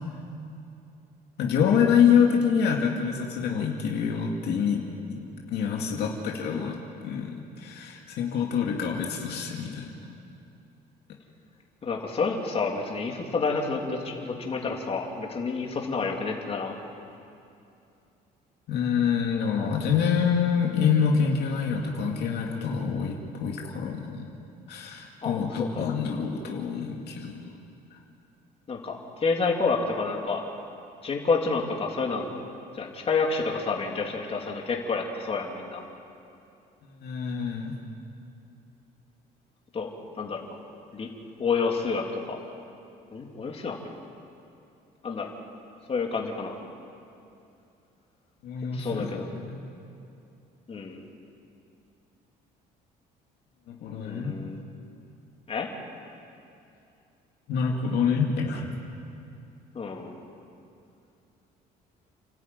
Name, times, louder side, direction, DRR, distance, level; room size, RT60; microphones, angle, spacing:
voice 1, 1.4-6.8 7.0-9.9 18.7-24.3 24.7-27.5 27.9-28.0 36.8-37.7 48.4-49.6 53.7-54.4 57.5-58.7, left 7 dB, 75° left, 0 dB, 2.4 m, -26 dB
voice 2, 11.8-16.8 25.2-25.9 28.7-30.4 31.0-32.4 32.7-35.8 39.7-39.9 40.1-40.6 40.9-41.1 41.4-42.4 43.1-43.9 45.0-45.3 45.9-46.5 48.7-49.3 50.7-51.0 54.0-54.6 55.5-55.7 59.7-60.2, left 4 dB, 35° left, 1 dB, 3.1 m, -29 dB
30.0 x 13.0 x 9.4 m, 2.6 s
cardioid pair, 110°, 17 cm